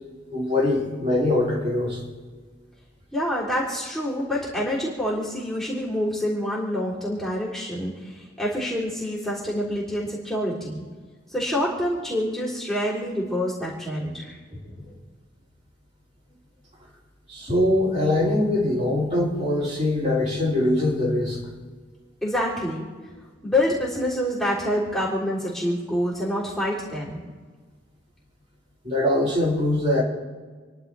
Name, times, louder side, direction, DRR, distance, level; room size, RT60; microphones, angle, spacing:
voice 1, 0.3-2.0 17.3-21.4 28.8-30.0, left 1 dB, 35° right, -6 dB, 5.0 m, -22 dB
voice 2, 3.1-10.8 11.3-14.4 22.2-22.9 23.4-27.2, left 1 dB, ahead, -7 dB, 3.5 m, -27 dB
29.0 x 11.0 x 3.4 m, 1.4 s
head